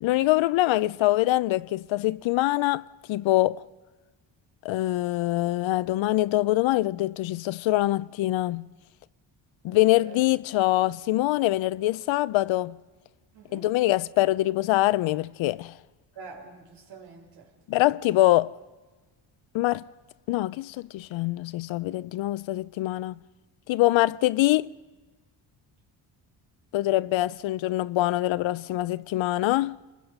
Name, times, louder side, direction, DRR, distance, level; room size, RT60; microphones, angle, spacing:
voice 1, 0.0-2.8 3.1-3.6 4.6-8.7 9.6-12.8 13.5-15.8 17.7-18.5 19.5-19.9 20.3-23.2 23.7-24.7 26.7-29.8, left 16 dB, 85° left, 0.6 m, -24 dB
voice 2, 9.7-10.2 13.3-13.7 16.2-17.5, right 4 dB, 60° right, 5.6 m, -46 dB
29.5 x 21.0 x 5.5 m
cardioid pair, 155°, 45 cm